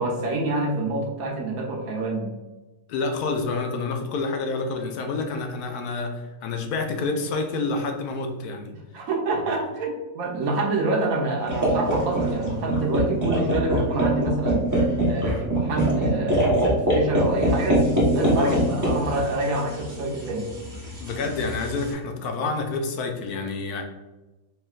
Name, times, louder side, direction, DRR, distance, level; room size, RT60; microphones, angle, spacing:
voice 1, 0.0-2.3 8.9-14.6 15.1-20.5, right 2 dB, 70° right, 0 dB, 1.2 m, -27 dB
voice 2, 2.9-8.7 9.3-9.4 15.2-15.4 18.4-18.6 21.0-23.8, left 3 dB, 80° left, 4 dB, 1.1 m, -28 dB
sound 1, 11.5-21.9, right 1 dB, 15° right, 0.8 m, -24 dB
4.5 x 3.6 x 2.4 m, 1.1 s
omnidirectional pair, 1.6 m